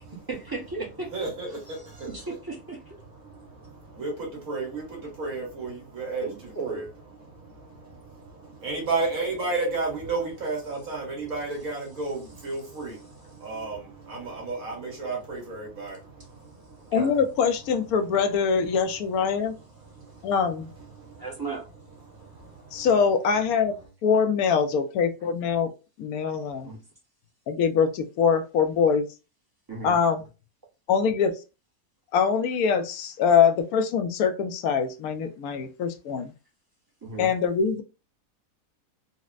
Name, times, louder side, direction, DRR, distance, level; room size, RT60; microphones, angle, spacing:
voice 1, 0.3-1.1 2.0-3.0 6.2-6.8 16.9-17.2 21.2-21.6 26.6-26.8 29.7-29.9 37.0-37.3, right 3 dB, 20° right, 0.6 m, -35 dB
voice 2, 1.1-2.3 3.0-6.9 7.2-17.0 19.4-20.3 20.8-21.3 22.0-22.9, right 3 dB, 65° right, 1.8 m, -33 dB
voice 3, 16.9-19.6 20.2-20.7 22.7-25.7 26.0-26.7 27.5-29.1 29.8-30.2 30.9-31.3 32.1-36.3 37.2-37.8, left 6 dB, 75° left, 1.0 m, -23 dB
4.1 x 2.1 x 2.4 m
omnidirectional pair, 1.6 m